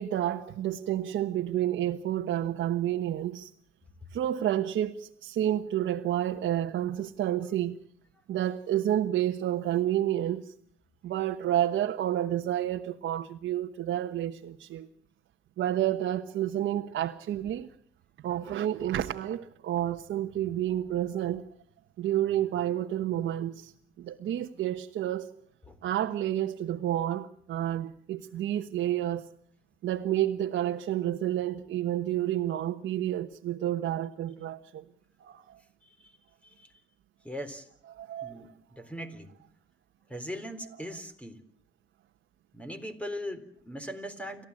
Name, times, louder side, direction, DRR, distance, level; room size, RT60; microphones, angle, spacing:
voice 1, 0.0-3.5 4.1-7.8 8.3-10.5 11.0-14.9 15.6-17.7 18.2-21.5 22.0-23.7 24.0-25.3 25.8-29.3 29.8-34.8 35.3-35.5 37.9-38.4, right 12 dB, 75° right, 1.2 m, -30 dB
voice 2, 37.2-37.7 38.2-39.3 40.1-41.4 42.5-44.4, equal, 5° left, 3.9 m, -40 dB
29.5 x 13.5 x 8.6 m
cardioid pair, 90°, 20 cm